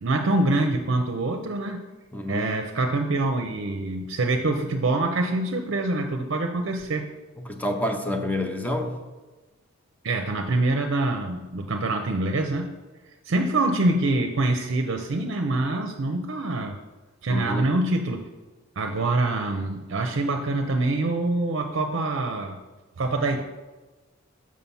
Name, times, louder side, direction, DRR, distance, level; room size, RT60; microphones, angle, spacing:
voice 1, 0.0-1.8 2.3-7.1 10.0-12.7 13.2-16.8 17.2-18.3 18.8-22.6 23.0-23.4, right 2 dB, 60° right, 4 dB, 0.6 m, -25 dB
voice 2, 2.1-2.5 7.4-9.0 17.3-17.7, left 1 dB, 10° left, 4 dB, 0.6 m, -28 dB
6.4 x 5.6 x 5.5 m, 1.2 s
head